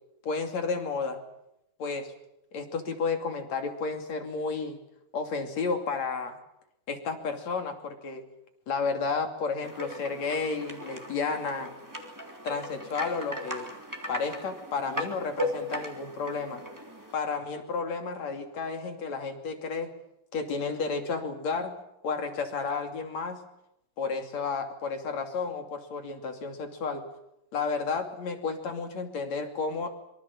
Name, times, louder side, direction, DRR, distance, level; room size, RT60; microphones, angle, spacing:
voice 1, 0.2-1.2 1.8-2.1 2.5-4.8 5.1-6.4 6.9-8.2 8.7-11.7 12.4-13.7 14.1-16.6 17.1-19.9 20.3-21.8 22.0-23.4 24.0-27.1 27.5-29.9, left 4 dB, 55° left, 5 dB, 3.9 m, -32 dB
sound 1, 9.6-17.1, left 1 dB, 5° right, 2.7 m, -37 dB
25.5 x 24.0 x 7.3 m, 0.84 s
omnidirectional pair, 3.8 m